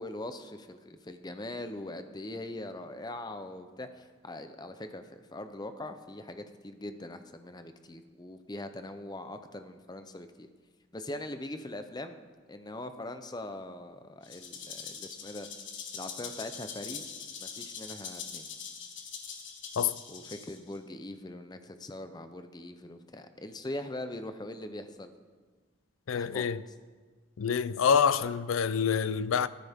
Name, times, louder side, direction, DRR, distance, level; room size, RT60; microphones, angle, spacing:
voice 1, 0.0-10.5 10.9-15.5 15.9-18.5 20.1-25.1 26.1-26.5, left 1 dB, 20° left, 0.6 m, -42 dB
Rattle (instrument), 14.2-20.8, left 6 dB, 65° left, 1.5 m, -43 dB
voice 2, 26.1-26.6 27.4-29.5, left 7 dB, 85° left, 0.5 m, -26 dB
14.5 x 13.5 x 3.6 m
head